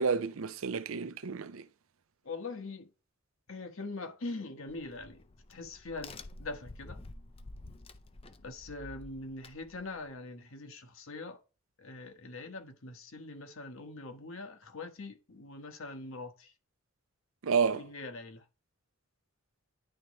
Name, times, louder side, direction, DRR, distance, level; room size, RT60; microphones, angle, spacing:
voice 1, 0.0-1.6 17.4-17.8, right 5 dB, 80° right, 0.5 m, -30 dB
voice 2, 2.2-2.9 3.5-5.2 5.5-7.0 8.4-11.4 11.8-16.5 17.7-18.4, left 3 dB, 75° left, 1.3 m, -43 dB
Crack, 4.7-10.1, left 2 dB, 25° left, 0.4 m, -50 dB
10.0 x 3.8 x 3.1 m
head